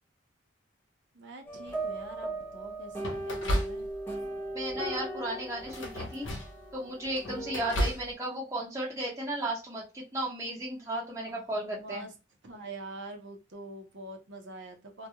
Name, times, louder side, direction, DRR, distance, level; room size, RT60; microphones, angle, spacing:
voice 1, 1.1-3.9 11.3-12.1 12.4-15.1, right 1 dB, 70° right, 4 dB, 0.7 m, -45 dB
sound 1, 1.5-7.9, right 2 dB, 10° left, 0.7 m, -38 dB
sound 2, 1.7-2.1 3.0-4.2 4.6-5.0 5.6-6.7 7.0-8.1, equal, 80° left, 0.7 m, -33 dB
voice 2, 4.5-6.3 6.7-12.1, right 1 dB, 15° right, -5 dB, 0.9 m, -34 dB
2.2 x 2.2 x 2.8 m, 0.27 s
head